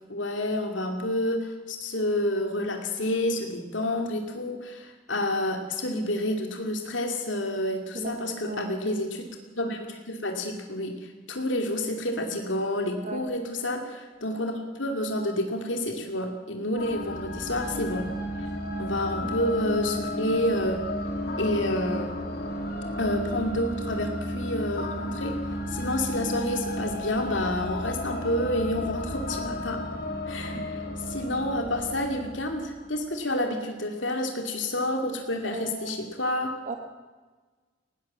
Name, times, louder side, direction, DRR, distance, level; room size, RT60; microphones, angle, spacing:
voice 1, 0.1-9.2 9.6-18.1 18.8-20.8 21.4-22.2 23.0-25.3 25.7-29.8 30.3-36.5, left 1 dB, 80° left, 3 dB, 2.6 m, -29 dB
voice 2, 7.9-8.7 13.0-13.2 16.7-16.9 19.2-19.4 30.5-30.6 35.4-36.1 36.7-36.8, right 3 dB, 40° right, 5 dB, 1.5 m, -37 dB
sound 1, 16.8-33.0, left 1 dB, 55° left, 3.3 m, -33 dB
19.5 x 18.0 x 7.5 m, 1.3 s
head